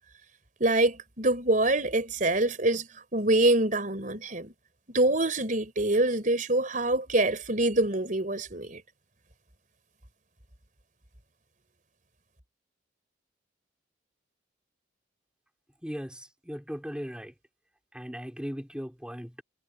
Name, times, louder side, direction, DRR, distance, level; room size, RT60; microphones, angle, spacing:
voice 1, 0.6-4.5 4.9-8.8, right 2 dB, 45° right, 4.9 m, -25 dB
voice 2, 15.8-17.3 17.9-19.4, equal, 5° right, 4.1 m, -38 dB
head